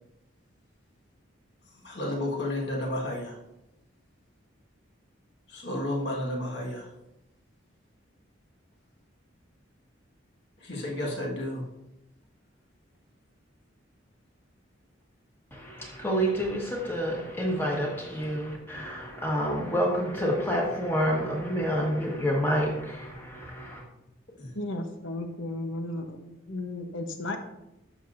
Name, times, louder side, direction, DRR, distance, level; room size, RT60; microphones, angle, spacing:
voice 1, 1.8-3.4 5.5-6.9 10.6-11.6 24.4-24.5, left 1 dB, 55° left, -2 dB, 1.6 m, -32 dB
voice 2, 15.5-23.8, equal, 10° left, -2 dB, 1.4 m, -28 dB
voice 3, 24.5-27.4, left 2 dB, 75° left, 5 dB, 0.9 m, -34 dB
11.0 x 5.9 x 2.6 m, 0.88 s
head